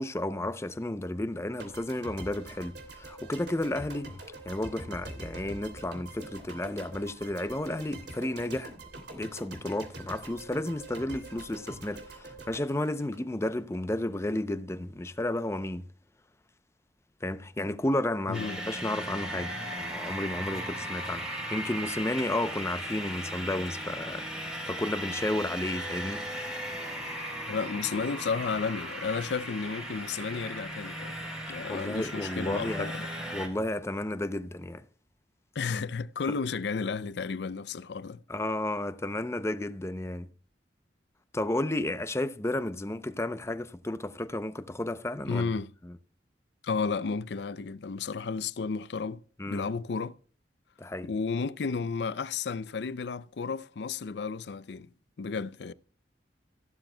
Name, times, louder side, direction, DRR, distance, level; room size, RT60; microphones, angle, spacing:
voice 1, 0.0-4.1 4.5-8.7 9.1-15.8 17.2-24.3 24.7-26.2 31.7-32.9 33.3-34.8 38.3-40.3 41.3-45.5 45.8-45.9 49.4-49.7 50.8-51.1, left 1 dB, 15° left, 0.5 m, -32 dB
sound 1, 1.6-13.8, right 2 dB, 70° right, 2.8 m, -44 dB
sound 2, 18.3-33.5, equal, 5° right, 3.4 m, -37 dB
voice 2, 27.5-31.1 31.5-33.1 35.6-38.2 45.3-45.7 46.6-49.2 49.5-50.1 51.0-54.9 55.2-55.7, left 5 dB, 70° left, 0.5 m, -32 dB
15.5 x 11.5 x 2.2 m
head